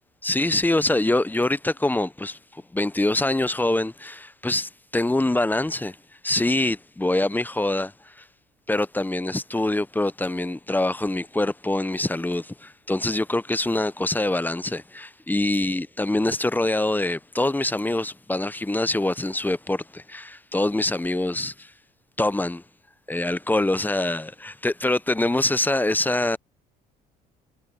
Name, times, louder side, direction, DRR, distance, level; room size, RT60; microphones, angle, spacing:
voice 1, 0.2-6.0 6.2-8.2 8.7-21.7 22.2-22.6 23.1-26.4, left 2 dB, 10° left, 0.8 m, -24 dB
supercardioid pair, 65°, 20 cm